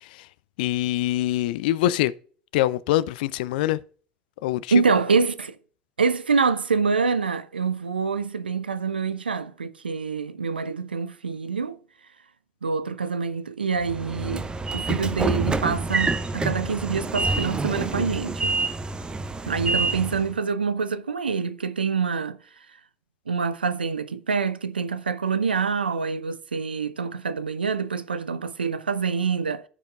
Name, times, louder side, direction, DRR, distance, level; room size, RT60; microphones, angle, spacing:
voice 1, 0.6-2.1 2.5-3.8 4.4-4.7, left 14 dB, 65° left, 0.3 m, -24 dB
voice 2, 4.7-5.6 6.0-11.8 12.6-14.5 14.7-18.6 19.5-22.4 23.3-29.6, right 5 dB, 85° right, 0.5 m, -26 dB
Train / Sliding door, 13.8-20.3, right 3 dB, 15° right, 0.7 m, -27 dB
15.0 x 5.0 x 2.4 m
figure-of-eight pair, 70°, 5 cm